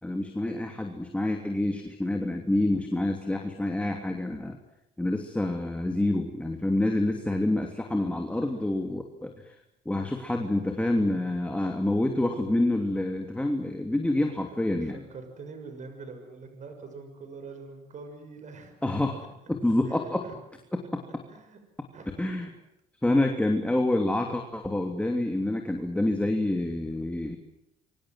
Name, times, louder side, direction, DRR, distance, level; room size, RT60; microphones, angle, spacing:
voice 1, 0.0-4.6 5.0-9.5 9.8-15.0 18.8-20.3 20.7-21.0 22.2-22.5 23.0-27.4, left 1 dB, 5° left, 3 dB, 3.0 m, -27 dB
voice 2, 14.5-18.7 19.0-19.1 19.9-20.3 21.3-21.6 21.9-22.5, right 4 dB, 45° right, 7 dB, 6.9 m, -45 dB
27.0 x 24.5 x 7.8 m, 0.84 s
cardioid pair, 110°, 17 cm